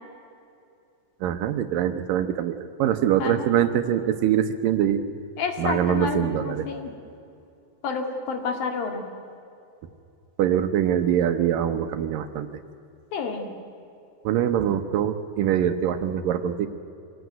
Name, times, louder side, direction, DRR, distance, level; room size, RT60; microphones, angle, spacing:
voice 1, 1.2-5.0 5.6-6.7 10.4-12.5 14.2-16.7, right 10 dB, 75° right, 8 dB, 2.4 m, -23 dB
voice 2, 5.4-6.9 7.8-9.0 13.1-13.5, left 5 dB, 70° left, 4 dB, 3.8 m, -29 dB
25.0 x 17.5 x 9.4 m, 2.6 s
omnidirectional pair, 4.4 m